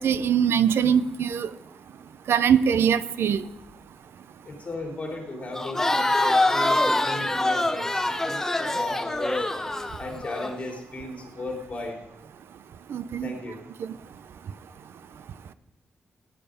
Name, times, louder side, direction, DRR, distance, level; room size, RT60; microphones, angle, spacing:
voice 1, 0.0-1.5 2.3-3.4 12.9-13.3 13.8-13.9, right 8 dB, 70° right, 15 dB, 0.5 m, -22 dB
voice 2, 4.4-9.4 10.0-12.0 13.2-13.6, left 2 dB, 35° left, 0 dB, 3.3 m, -36 dB
Crowd, 5.5-10.5, left 2 dB, 10° left, 0.6 m, -24 dB
17.5 x 9.3 x 5.1 m, 1.0 s
wide cardioid pair, 150°, 4 cm